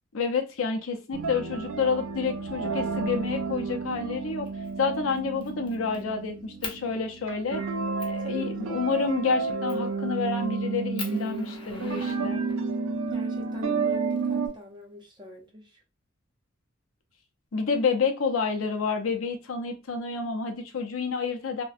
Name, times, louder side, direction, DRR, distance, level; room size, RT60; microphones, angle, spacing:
voice 1, 0.1-4.5 4.8-7.6 8.0-12.4 17.5-21.6, left 5 dB, 80° left, 0.5 m, -29 dB
sound 1, 1.1-14.5, right 4 dB, 75° right, 0.4 m, -31 dB
Fire, 4.4-4.7 5.1-6.0 6.6-6.8 7.4-7.5 8.0-8.2 9.7-9.9 10.4-10.5 11.0-12.7 13.8-14.8, left 4 dB, 25° left, 0.5 m, -41 dB
voice 2, 8.2-8.8 13.1-15.8, left 1 dB, 20° right, 0.5 m, -44 dB
2.5 x 2.1 x 2.3 m
head